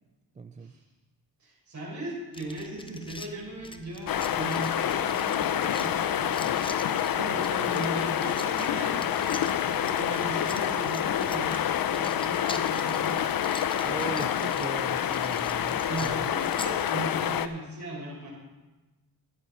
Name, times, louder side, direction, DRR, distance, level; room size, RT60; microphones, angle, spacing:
voice 1, 0.4-0.7 13.8-16.3, right 4 dB, 20° right, 10 dB, 0.3 m, -39 dB
voice 2, 1.4-13.3 15.7-18.3, right 1 dB, 45° right, -2 dB, 4.6 m, -38 dB
sound 1, 2.3-16.8, left 2 dB, 15° left, 0.6 m, -45 dB
sound 2, 4.1-17.5, left 10 dB, 65° left, 0.6 m, -27 dB
13.0 x 9.9 x 4.2 m, 1.2 s
cardioid pair, 95°, 37 cm